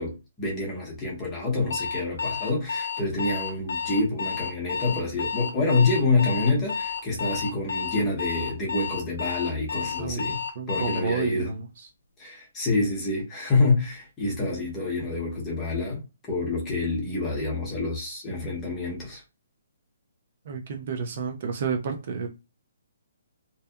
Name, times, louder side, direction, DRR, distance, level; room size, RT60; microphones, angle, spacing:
voice 1, 0.0-10.4 10.7-11.5 12.2-19.2, left 3 dB, 15° left, 0.7 m, -27 dB
Alarm, 1.7-11.1, left 5 dB, 75° left, 0.5 m, -31 dB
voice 2, 10.6-11.9 20.4-22.3, right 5 dB, 40° right, 0.3 m, -30 dB
2.6 x 2.1 x 2.3 m
hypercardioid pair, 170°, 0 cm